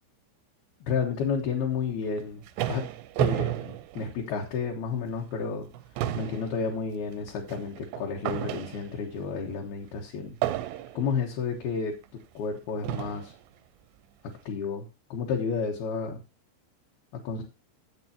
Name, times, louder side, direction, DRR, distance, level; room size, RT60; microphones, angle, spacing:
voice 1, 0.8-2.4 2.7-2.9 3.2-5.7 6.1-10.4 10.9-11.9 12.3-13.3 14.5-16.2 17.1-17.4, left 5 dB, 65° left, -1 dB, 2.8 m, -31 dB
sound 1, 2.0-4.7 5.1-5.3 5.6-9.2 10.4-11.2 12.0-12.1 12.8-13.4, right 13 dB, 80° right, 2.8 m, -32 dB
13.5 x 7.8 x 2.8 m, 0.28 s
omnidirectional pair, 5.3 m